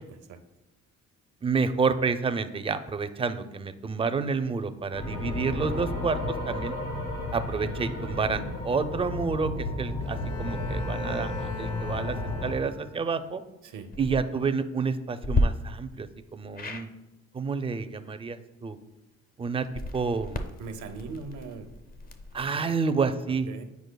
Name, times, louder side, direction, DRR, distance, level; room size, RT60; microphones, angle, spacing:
voice 1, 0.1-0.4 13.6-13.9 20.6-21.7 22.3-22.7 23.5-23.6, right 4 dB, 80° right, 7 dB, 0.7 m, -40 dB
voice 2, 1.4-6.7 7.3-12.2 12.4-13.4 14.0-16.9 17.3-18.8 19.4-19.7 19.9-20.4 22.3-23.5, right 5 dB, 20° right, 10 dB, 0.4 m, -29 dB
sound 1, 4.9-12.5, left 1 dB, 75° left, 1.7 m, -32 dB
Bowed string instrument, 10.0-13.2, left 3 dB, 50° left, 0.9 m, -42 dB
sound 2, 13.8-14.2 15.2-15.4 16.5-16.9 19.6-22.4, left 2 dB, 30° left, 0.5 m, -32 dB
9.3 x 4.8 x 2.2 m, 0.97 s
cardioid pair, 90°, 30 cm